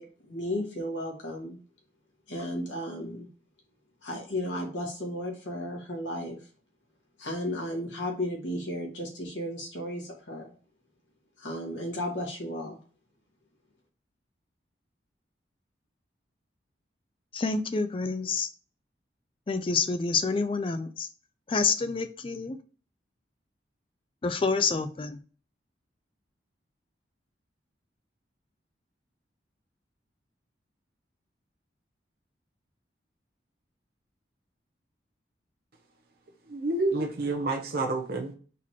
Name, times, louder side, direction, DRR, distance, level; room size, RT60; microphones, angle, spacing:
voice 1, 0.0-1.6 2.3-3.3 4.0-6.4 7.2-10.5 11.4-12.8, left 1 dB, 90° left, 0 dB, 1.6 m, -34 dB
voice 2, 17.3-18.5 19.5-21.1 21.5-22.6 24.2-25.2, left 4 dB, 30° left, 10 dB, 0.4 m, -28 dB
voice 3, 36.5-38.3, right 2 dB, 55° right, 2 dB, 0.7 m, -29 dB
4.1 x 2.9 x 4.4 m, 0.39 s
head